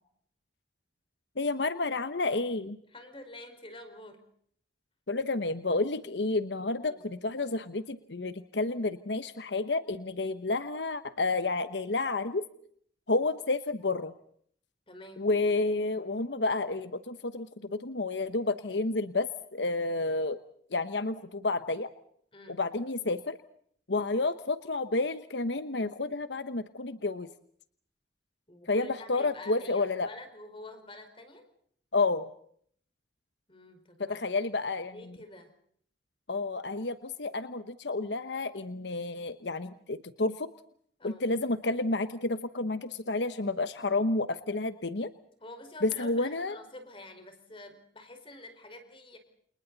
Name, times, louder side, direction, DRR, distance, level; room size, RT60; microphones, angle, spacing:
voice 1, 1.4-2.8 5.1-12.4 13.1-14.1 15.2-20.4 20.7-21.9 22.5-23.4 23.9-27.3 28.7-30.1 31.9-32.3 34.0-35.2 36.3-40.5 41.0-45.1 45.8-46.6, left 3 dB, 80° left, 11 dB, 1.1 m, -30 dB
voice 2, 2.9-4.2 6.8-7.0 14.9-15.3 22.3-22.6 28.5-31.5 33.5-34.3 34.9-35.5 41.0-41.2 45.4-49.2, left 2 dB, 30° left, 7 dB, 5.0 m, -48 dB
30.0 x 28.5 x 4.1 m, 0.63 s
head